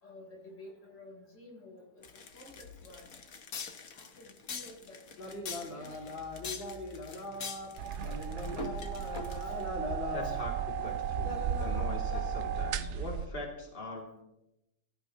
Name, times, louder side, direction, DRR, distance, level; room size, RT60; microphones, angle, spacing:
voice 1, 0.0-3.2 3.9-6.4 9.4-9.6 10.2-10.3, left 1 dB, 70° left, -1 dB, 4.6 m, -53 dB
sound 1, 2.0-9.7, left 4 dB, 50° left, 1.5 m, -43 dB
sound 2, 5.2-12.2, left 2 dB, 90° left, 3.4 m, -41 dB
sound 3, 7.8-13.3, right 7 dB, 80° right, 0.6 m, -34 dB
voice 2, 10.1-14.2, left 1 dB, 25° left, -2 dB, 3.0 m, -42 dB
22.5 x 14.0 x 3.0 m, 0.89 s
omnidirectional pair, 2.0 m